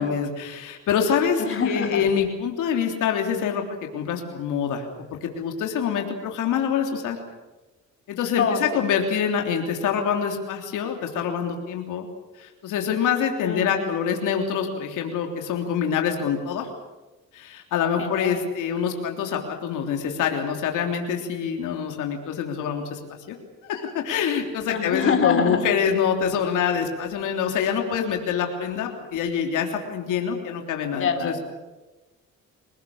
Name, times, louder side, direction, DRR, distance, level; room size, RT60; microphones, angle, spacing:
voice 1, 0.0-3.6 3.9-4.9 5.2-7.2 8.1-12.0 12.4-16.7 17.3-23.0 23.3-23.4 23.6-31.4, left 7 dB, 85° left, 3 dB, 3.4 m, -25 dB
voice 2, 1.4-2.0 8.4-8.8 13.4-13.9 18.0-18.4 24.7-25.6 30.9-31.4, left 6 dB, 45° left, 5 dB, 3.9 m, -25 dB
28.0 x 18.5 x 7.2 m, 1.1 s
cardioid pair, 90°, 30 cm